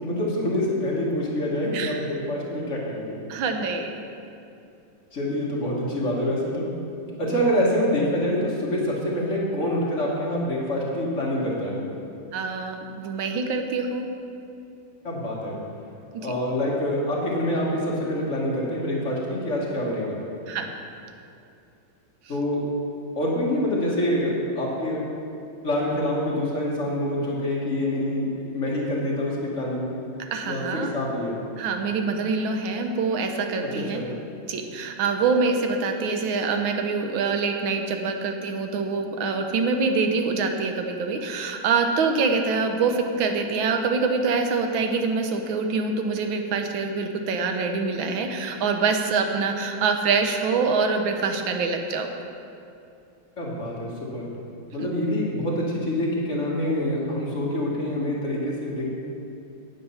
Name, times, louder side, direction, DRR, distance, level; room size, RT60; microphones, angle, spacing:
voice 1, 0.0-3.1 5.1-6.7 7.2-11.8 15.0-15.6 16.2-20.2 22.3-22.6 23.2-25.0 25.6-29.9 30.4-30.6 30.9-31.4 33.9-34.1 53.4-54.3 54.7-58.8, left 1 dB, 40° left, -5 dB, 1.9 m, -26 dB
voice 2, 3.3-3.9 7.1-7.2 12.3-14.1 16.2-16.3 20.5-20.7 30.3-30.9 31.6-34.0 34.5-52.1 54.8-54.9, right 4 dB, 80° right, 5 dB, 1.6 m, -25 dB
8.7 x 8.2 x 5.6 m, 2.7 s
omnidirectional pair, 2.1 m